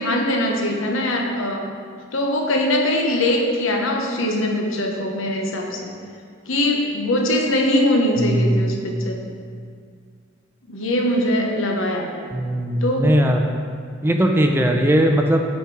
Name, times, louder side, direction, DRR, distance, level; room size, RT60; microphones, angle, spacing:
voice 1, 0.0-1.6 2.1-5.9 6.5-8.8 9.0-9.3 10.7-12.1 12.8-13.1, left 1 dB, 75° left, 1 dB, 1.0 m, -21 dB
voice 2, 8.2-8.9 12.3-13.6 14.0-15.4, equal, 10° right, 3 dB, 0.4 m, -19 dB
8.2 x 4.3 x 4.7 m, 2.1 s
head